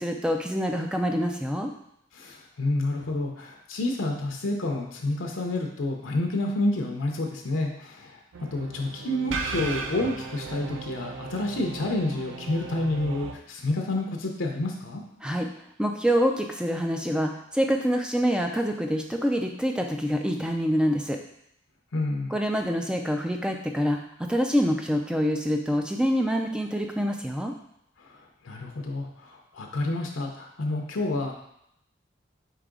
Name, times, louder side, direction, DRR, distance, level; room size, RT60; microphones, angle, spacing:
voice 1, 0.0-1.7 15.2-15.5 15.8-21.2 22.3-27.5, equal, 5° right, 3 dB, 0.3 m, -26 dB
voice 2, 2.1-8.2 8.5-15.0 21.9-22.4 28.0-31.3, left 2 dB, 75° left, 1 dB, 0.6 m, -29 dB
sound 1, 8.3-13.3, right 4 dB, 75° right, 0.4 m, -36 dB
4.8 x 2.9 x 3.7 m, 0.75 s
head